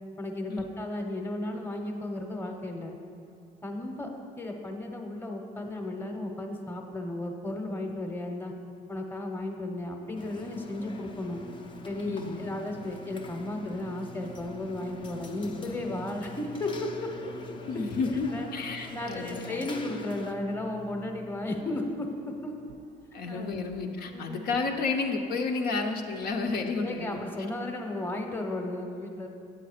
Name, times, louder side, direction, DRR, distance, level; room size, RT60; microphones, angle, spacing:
voice 1, 0.2-3.0 3.6-4.1 4.4-8.5 8.9-11.4 11.9-17.8 18.3-18.5 18.9-22.6 23.2-23.6 24.1-24.5 26.7-29.3, left 1 dB, 10° left, 3 dB, 1.0 m, -34 dB
sound 1, 9.0-9.4 10.1-25.0, right 7 dB, 60° right, 0.5 m, -51 dB
sound 2, 10.2-20.3, left 3 dB, 30° left, 0.6 m, -45 dB
voice 2, 12.0-12.4 17.7-19.6 23.1-27.2, left 4 dB, 65° left, 2 dB, 0.8 m, -31 dB
8.8 x 7.8 x 5.0 m, 2.6 s
cardioid pair, 110°, 17 cm